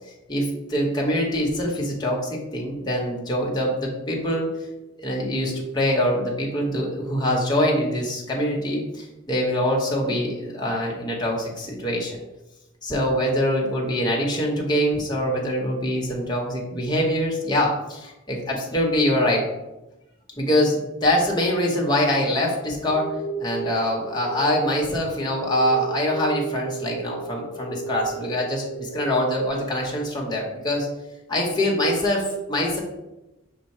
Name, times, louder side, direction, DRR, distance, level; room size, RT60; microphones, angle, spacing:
voice 1, 0.3-4.5 5.0-12.2 12.8-19.5 20.3-23.1 23.4-30.9 31.3-32.8, left 1 dB, 20° left, -2 dB, 0.8 m, -24 dB
sound 1, 22.8-29.5, right 4 dB, 10° right, 1.4 m, -34 dB
5.5 x 2.0 x 4.1 m, 0.97 s
head